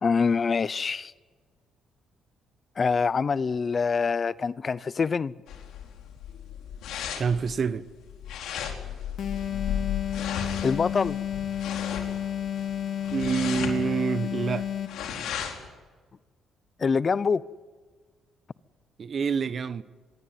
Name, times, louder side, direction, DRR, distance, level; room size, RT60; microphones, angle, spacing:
voice 1, 0.0-1.1 2.8-5.3 10.6-11.2 16.8-17.4, left 5 dB, 35° left, 0.7 m, -25 dB
sound 1, 5.5-15.7, left 8 dB, 80° left, 4.5 m, -35 dB
voice 2, 7.2-7.9 13.1-14.7 19.0-19.8, right 6 dB, 45° right, 1.2 m, -27 dB
sound 2, 9.2-15.1, left 9 dB, 65° left, 2.5 m, -31 dB
25.0 x 21.5 x 9.4 m
cardioid pair, 95°, 0 cm